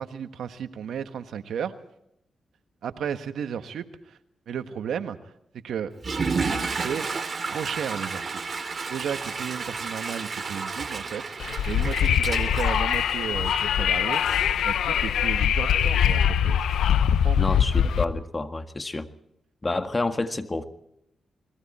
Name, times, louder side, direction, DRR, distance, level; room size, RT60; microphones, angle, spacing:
voice 1, 0.0-1.7 2.8-4.2 4.5-5.3 5.6-5.9 6.8-7.1 7.5-8.4 8.9-16.7 17.1-17.4, right 8 dB, 80° right, 9 dB, 1.4 m, -34 dB
Water / Toilet flush, 5.9-13.7, right 4 dB, 45° right, 3.1 m, -31 dB
Wind, 11.4-18.1, left 9 dB, 90° left, 1.0 m, -23 dB
voice 2, 17.4-19.1 19.6-20.6, left 2 dB, 25° left, 8 dB, 1.8 m, -29 dB
29.0 x 21.5 x 4.3 m, 0.77 s
cardioid pair, 75°, 0 cm